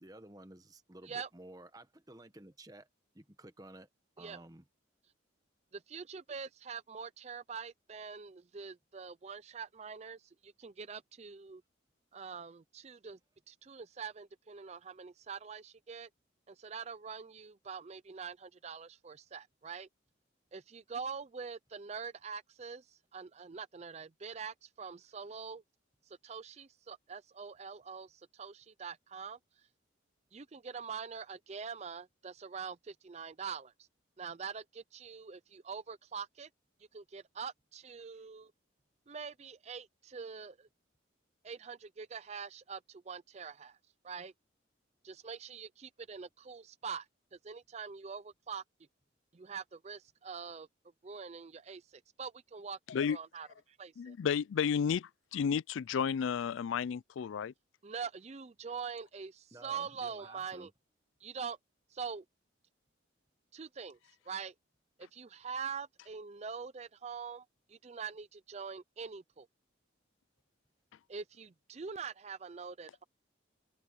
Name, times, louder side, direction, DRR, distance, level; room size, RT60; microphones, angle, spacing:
voice 1, 0.0-2.9 3.1-3.9 4.2-4.7 59.5-60.7, right 1 dB, 20° right, 1.2 m, -53 dB
voice 2, 5.7-11.6 12.1-13.2 13.5-16.1 16.5-19.9 20.5-25.6 26.1-29.4 30.3-33.9 34.2-36.5 36.9-38.5 39.1-40.7 41.4-43.8 44.0-44.3 45.0-48.6 49.3-50.7 51.0-52.8 53.1-54.1 57.8-60.7 61.2-61.6 61.9-62.2 63.5-64.0 64.3-64.5 65.0-69.5 71.1-73.0, right 6 dB, 35° right, 0.4 m, -44 dB
voice 3, 54.0-57.5, left 7 dB, 80° left, 0.4 m, -32 dB
head